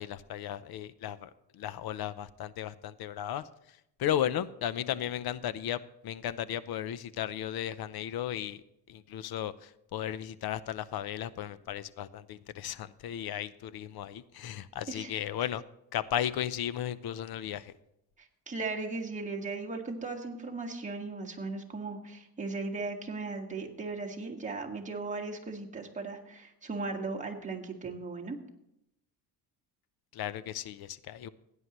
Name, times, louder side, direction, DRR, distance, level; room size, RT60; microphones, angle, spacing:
voice 1, 0.0-3.4 4.0-8.6 8.9-15.6 15.9-17.7 30.1-31.3, left 10 dB, 65° left, 16 dB, 0.7 m, -35 dB
voice 2, 18.2-28.4, right 3 dB, 20° right, 1 dB, 1.8 m, -37 dB
16.5 x 9.7 x 3.1 m, 0.80 s
cardioid pair, 130°, 41 cm